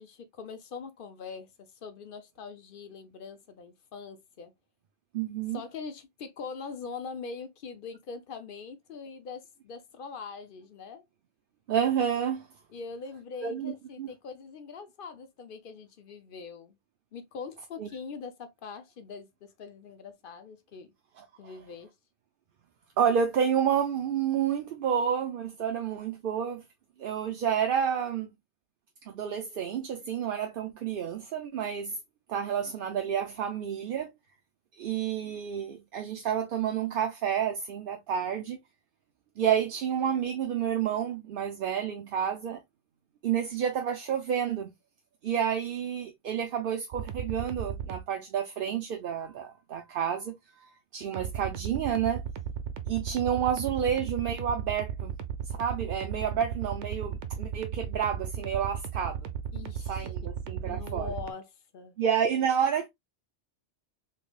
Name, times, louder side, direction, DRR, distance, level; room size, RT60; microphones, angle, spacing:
voice 1, 0.0-4.5 5.5-11.0 12.7-16.8 17.1-20.9 21.4-21.9 59.5-60.1 60.6-62.0, left 5 dB, 55° left, 0.8 m, -42 dB
voice 2, 5.1-5.6 11.7-12.4 13.4-13.7 14.0-14.1 17.8-17.9 23.0-26.6 27.0-28.3 29.1-32.0 32.3-34.1 34.8-38.6 39.4-42.6 43.2-44.7 45.2-52.2 52.9-55.1 55.6-59.3 59.9-61.1 62.0-62.9, right 8 dB, 60° right, 0.7 m, -29 dB
sound 1, 46.9-48.0 51.1-61.3, right 8 dB, 80° right, 0.9 m, -35 dB
3.5 x 3.2 x 2.2 m
omnidirectional pair, 1.2 m